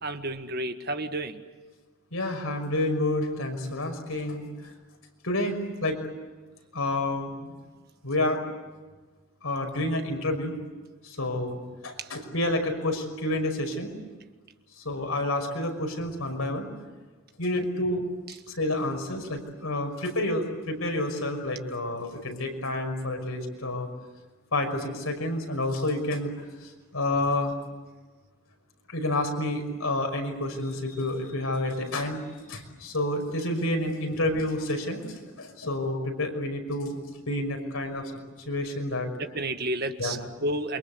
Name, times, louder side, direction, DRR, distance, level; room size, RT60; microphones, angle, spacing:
voice 1, 0.0-1.4 12.0-12.1 17.5-17.6 18.3-18.4 39.2-40.8, right 1 dB, 45° right, 7 dB, 1.7 m, -31 dB
voice 2, 2.1-4.5 5.2-6.0 6.7-7.6 8.0-8.4 9.4-10.6 11.0-13.9 14.8-16.7 17.4-18.0 18.5-23.9 24.5-26.3 26.6-27.5 28.9-32.2 32.5-35.0 35.4-37.0 37.3-38.1 38.5-39.1 40.0-40.2, left 1 dB, 85° left, 4 dB, 5.7 m, -29 dB
28.5 x 24.5 x 8.2 m, 1.3 s
head